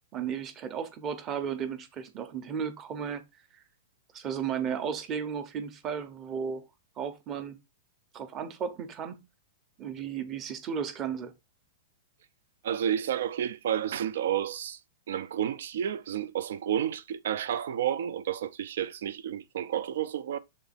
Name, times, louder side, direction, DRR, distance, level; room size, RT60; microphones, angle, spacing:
voice 1, 0.1-3.2 4.1-6.6 7.0-7.6 8.1-9.2 9.8-11.3, right 7 dB, 20° right, 0.8 m, -34 dB
voice 2, 12.6-14.8 15.1-20.4, right 10 dB, 65° right, 0.7 m, -31 dB
7.0 x 4.0 x 4.1 m
supercardioid pair, 170°, 0 cm